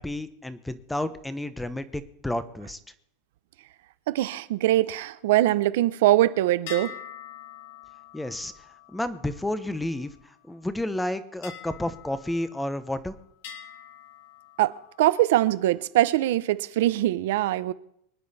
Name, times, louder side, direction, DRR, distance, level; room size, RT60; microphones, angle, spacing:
voice 1, 0.0-2.8 8.1-8.5 8.9-10.1 10.5-13.1, left 1 dB, 5° left, 0.8 m, -31 dB
voice 2, 4.1-6.9 14.6-17.7, right 15 dB, 70° right, 0.8 m, -22 dB
sound 1, 6.7-10.3 11.4-13.0 13.4-15.1, left 8 dB, 70° left, 3.1 m, -45 dB
25.0 x 10.0 x 4.2 m
supercardioid pair, 160°, 0 cm